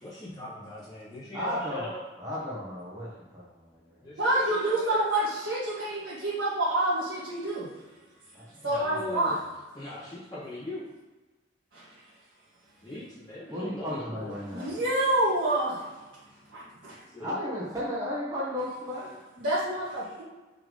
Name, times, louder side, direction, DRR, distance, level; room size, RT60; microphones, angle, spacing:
voice 1, 0.0-2.0 4.0-5.0 8.6-9.4 9.7-10.8 12.8-14.3 17.1-17.3, left 1 dB, 20° left, -13 dB, 1.9 m, -40 dB
voice 2, 1.3-1.9 2.2-4.0 8.3-9.4 13.5-14.8 17.2-19.3, equal, 20° right, -7 dB, 1.4 m, -35 dB
voice 3, 4.2-7.7 8.6-9.4 11.7-11.8 14.5-15.8 16.5-17.0 19.4-20.2, right 1 dB, 80° right, -12 dB, 2.2 m, -27 dB
6.2 x 3.6 x 5.4 m, 1.2 s
head